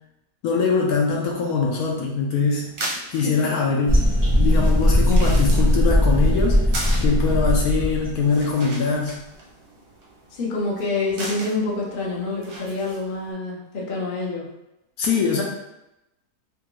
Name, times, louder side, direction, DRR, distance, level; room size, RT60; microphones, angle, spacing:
voice 1, 0.4-2.7 3.1-4.1 4.3-6.6 7.0-9.2 15.0-15.4, left 4 dB, 70° left, 0 dB, 1.0 m, -22 dB
sound 1, 2.5-13.3, right 1 dB, 55° right, 0.8 m, -38 dB
sound 2, 3.9-8.2, equal, 30° right, 0.3 m, -19 dB
voice 2, 10.3-14.5, left 3 dB, 45° left, -3 dB, 0.7 m, -27 dB
3.3 x 2.5 x 3.0 m, 0.89 s
omnidirectional pair, 1.7 m